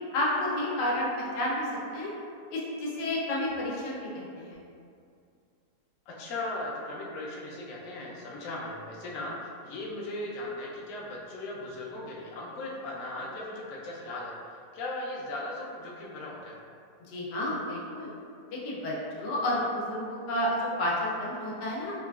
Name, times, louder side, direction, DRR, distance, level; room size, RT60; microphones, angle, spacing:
voice 1, 0.1-2.1 2.5-4.6 17.1-18.1 18.5-21.9, left 1 dB, 90° left, -4 dB, 1.3 m, -31 dB
voice 2, 6.1-16.6, left 2 dB, 70° left, -3 dB, 0.8 m, -38 dB
3.7 x 2.3 x 2.3 m, 2.4 s
omnidirectional pair, 1.8 m